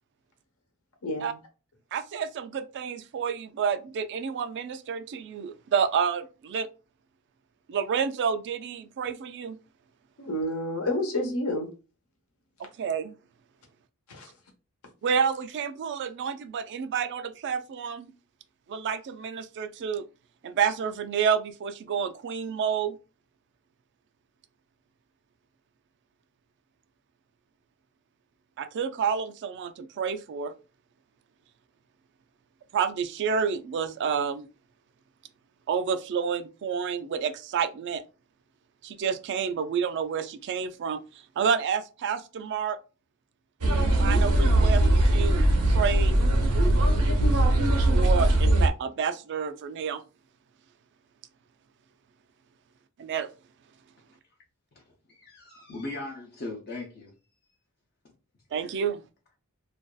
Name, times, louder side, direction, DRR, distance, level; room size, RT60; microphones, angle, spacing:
voice 1, 1.0-1.4 10.2-11.7 14.1-14.3, left 1 dB, 70° left, 0.9 m, -29 dB
voice 2, 1.9-6.7 7.7-9.6 12.6-13.2 15.0-18.1 18.7-20.1 20.4-23.0 28.6-30.5 32.7-34.5 35.7-38.0 38.8-41.0 41.4-42.8 44.0-46.2 47.9-50.0 53.0-53.3 58.5-59.0, right 6 dB, 55° right, 0.3 m, -29 dB
sound 1, 43.6-48.7, right 1 dB, 90° right, 0.7 m, -21 dB
voice 3, 55.2-57.1, left 2 dB, 45° left, 0.6 m, -38 dB
2.5 x 2.3 x 2.3 m
head